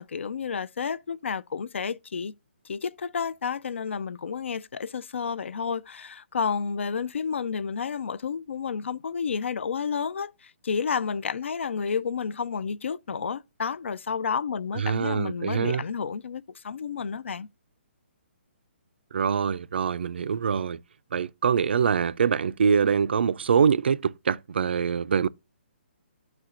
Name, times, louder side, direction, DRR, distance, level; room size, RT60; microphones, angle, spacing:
voice 1, 0.0-2.3 2.7-17.5, left 6 dB, 75° left, 0.4 m, -31 dB
voice 2, 14.8-15.8 19.1-20.8 21.1-25.3, right 6 dB, 60° right, 0.3 m, -24 dB
12.5 x 4.3 x 2.4 m
hypercardioid pair, 170°, 7 cm